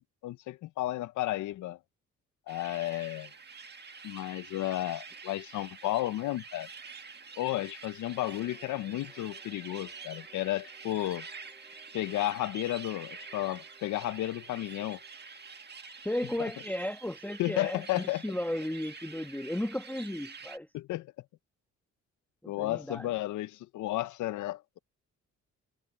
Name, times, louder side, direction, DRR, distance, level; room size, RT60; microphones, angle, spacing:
voice 1, 0.2-1.8 2.5-3.3 4.0-6.7 7.4-11.3 11.9-15.0 16.4-16.5 17.4-18.2 20.7-21.1 22.5-24.8, left 15 dB, 85° left, 0.6 m, -33 dB
sound 1, 2.5-20.6, right 5 dB, 35° right, 1.8 m, -47 dB
sound 2, 8.0-16.4, right 2 dB, 15° right, 5.6 m, -62 dB
voice 2, 16.0-20.7 22.4-23.1, left 1 dB, 5° left, 1.2 m, -35 dB
cardioid pair, 75°, 29 cm